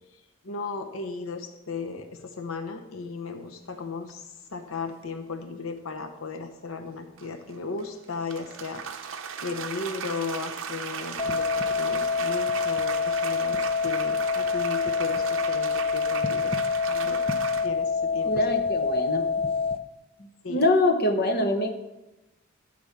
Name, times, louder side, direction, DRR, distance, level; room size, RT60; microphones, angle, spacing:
voice 1, 0.4-4.2 4.5-9.1 9.4-16.5 16.9-17.2 17.6-18.5 20.4-20.7, left 4 dB, 75° left, 6 dB, 0.8 m, -35 dB
sound 1, 4.1-4.2 7.2-17.7, right 7 dB, 60° right, 0.7 m, -37 dB
sound 2, 11.2-19.8, left 5 dB, 25° left, 0.6 m, -26 dB
voice 2, 18.2-19.3 20.5-21.7, left 1 dB, 45° left, 5 dB, 1.0 m, -24 dB
11.5 x 5.2 x 7.2 m, 1.0 s
head